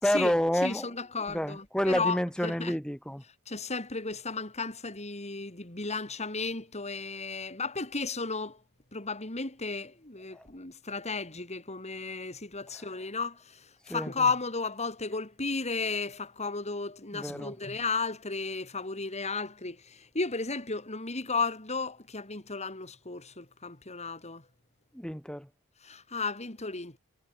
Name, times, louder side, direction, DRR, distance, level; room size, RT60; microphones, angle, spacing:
voice 1, 0.0-0.9 1.3-3.2 10.3-10.5 12.7-12.9 13.9-14.1 17.1-17.6 24.9-25.5, equal, 5° left, 4.6 m, -29 dB
voice 2, 0.6-2.7 3.5-8.6 8.9-13.6 13.9-24.4 25.8-27.0, left 4 dB, 30° left, 3.6 m, -34 dB
head